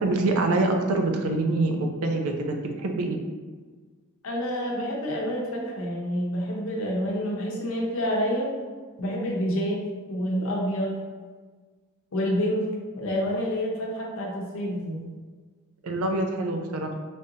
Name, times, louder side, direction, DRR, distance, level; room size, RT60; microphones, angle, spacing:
voice 1, 0.0-3.2 15.8-16.9, right 2 dB, 85° right, 3 dB, 0.4 m, -25 dB
voice 2, 4.2-8.5 9.0-9.8 10.1-11.0 12.1-15.0, equal, 70° left, -2 dB, 0.7 m, -28 dB
3.4 x 2.7 x 2.7 m, 1.5 s
head